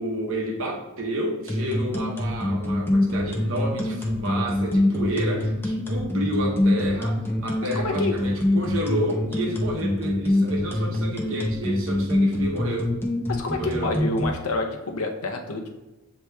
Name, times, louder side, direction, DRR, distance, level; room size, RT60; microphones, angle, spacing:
voice 1, 0.0-12.9 13.6-14.0, right 1 dB, 65° right, 0 dB, 0.8 m, -30 dB
sound 1, 1.5-14.3, left 1 dB, 10° left, 0.6 m, -24 dB
voice 2, 7.7-8.1 13.3-15.7, left 3 dB, 85° left, 3 dB, 0.7 m, -28 dB
7.8 x 2.9 x 2.3 m, 1.1 s
head